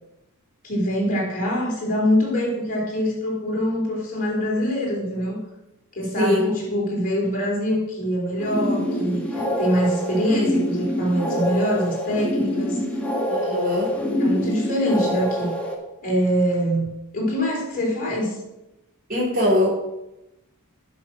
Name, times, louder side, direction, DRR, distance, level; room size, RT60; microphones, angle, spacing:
voice 1, 0.6-5.4 6.0-12.8 14.2-15.5 16.0-18.4, equal, 40° left, -4 dB, 3.9 m, -24 dB
voice 2, 6.2-6.5 13.3-14.0 19.1-19.7, left 1 dB, 40° right, -6 dB, 3.4 m, -21 dB
sound 1, 8.4-15.7, left 1 dB, 5° left, 1.6 m, -25 dB
10.0 x 6.3 x 6.2 m, 0.94 s
head